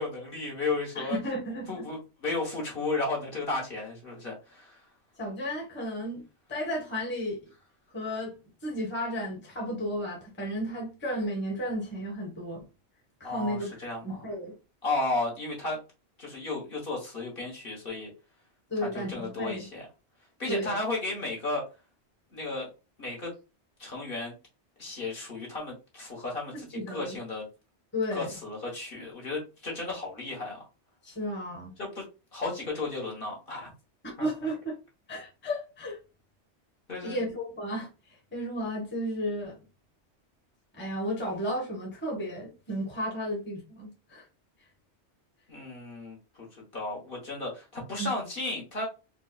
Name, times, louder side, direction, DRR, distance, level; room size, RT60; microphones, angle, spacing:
voice 1, 0.0-1.2 1.7-4.8 13.2-14.2 14.8-15.8 16.2-18.1 18.8-19.8 20.4-21.6 22.3-22.7 23.0-23.3 23.8-24.3 24.8-27.5 28.1-30.7 31.8-32.0 32.3-33.7 34.2-34.3 36.9-37.2 45.5-46.5 46.7-48.9, left 3 dB, 50° left, 1.3 m, -34 dB
voice 2, 0.9-1.8 5.2-7.4 7.9-12.6 13.2-13.7 14.0-14.5 18.7-19.7 20.5-20.8 26.5-27.2 27.9-28.3 31.0-31.7 34.0-34.8 35.1-36.0 37.0-37.9 38.3-39.6 40.7-44.2 48.0-48.1, equal, 10° left, 0.9 m, -33 dB
4.3 x 2.1 x 2.3 m
omnidirectional pair, 1.2 m